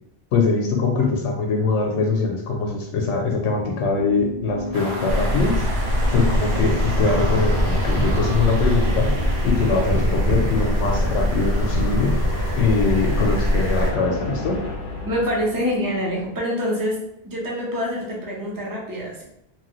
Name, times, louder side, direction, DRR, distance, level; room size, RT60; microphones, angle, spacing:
voice 1, 0.3-5.6 5.8-12.2 12.6-14.6, left 4 dB, 85° left, 1 dB, 0.9 m, -22 dB
sound 1, 3.5-16.0, left 1 dB, 55° left, 0.7 m, -32 dB
sound 2, 4.7-16.3, right 1 dB, 80° right, 0.9 m, -37 dB
sound 3, 5.1-13.9, equal, 55° right, 0.8 m, -22 dB
voice 2, 15.0-17.0 17.2-19.2, equal, 25° right, -4 dB, 0.6 m, -25 dB
3.1 x 2.3 x 2.9 m, 0.78 s
omnidirectional pair, 1.1 m